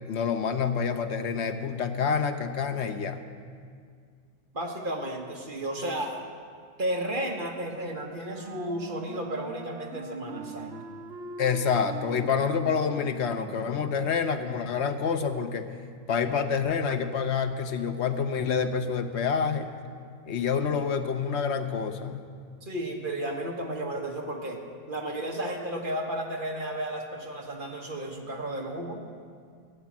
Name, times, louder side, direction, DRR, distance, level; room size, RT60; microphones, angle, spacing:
voice 1, 0.1-3.2 11.4-15.7 16.1-19.7 20.3-22.3, left 6 dB, 55° left, 8 dB, 0.9 m, -27 dB
voice 2, 4.5-6.1 6.8-10.8 22.6-24.6 24.9-29.0, right 1 dB, 40° right, 1 dB, 1.3 m, -33 dB
Wind instrument woodwind instrument, 8.2-14.4, right 3 dB, 60° right, 0.7 m, -43 dB
13.5 x 8.6 x 7.3 m, 2.1 s
omnidirectional pair, 1.5 m